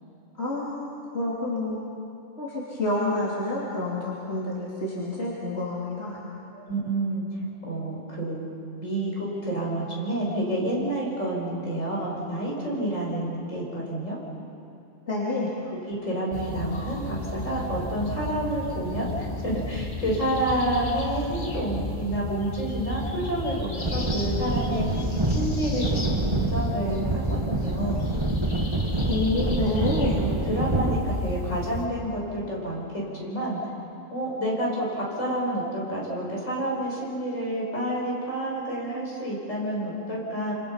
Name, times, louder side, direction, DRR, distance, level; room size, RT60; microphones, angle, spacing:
voice 1, 0.4-1.8 2.4-6.2 15.1-15.5 29.1-30.2, left 2 dB, 60° left, -6 dB, 3.3 m, -28 dB
voice 2, 6.5-8.5 8.8-14.2 15.7-28.1 30.1-33.6 34.1-40.5, right 1 dB, 80° left, -4 dB, 6.5 m, -29 dB
sound 1, 16.3-31.9, left 1 dB, 40° left, 2.2 m, -33 dB
sound 2, 23.8-31.0, right 2 dB, 20° right, 1.7 m, -27 dB
27.5 x 27.0 x 5.8 m, 2.6 s
omnidirectional pair, 1.3 m